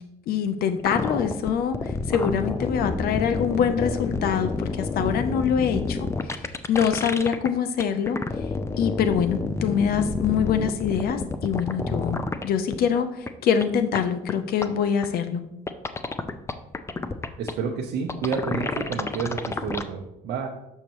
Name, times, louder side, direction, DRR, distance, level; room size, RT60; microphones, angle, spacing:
voice 1, 0.3-1.8 2.1-6.1 6.7-8.2 8.8-12.2 12.4-13.1 13.4-15.4, left 7 dB, 65° left, 9 dB, 0.6 m, -24 dB
sound 1, 0.8-7.5 7.8-12.5 12.7-12.8 13.3-13.4 13.6-13.7 13.9-14.0 14.3-14.4 14.6-14.7 15.0-15.1 15.7-17.5 18.1-19.8, left 3 dB, 15° left, 0.4 m, -29 dB
voice 2, 17.4-20.5, right 6 dB, 70° right, -1 dB, 0.8 m, -30 dB
6.6 x 6.4 x 3.0 m, 0.91 s
cardioid pair, 110°, 17 cm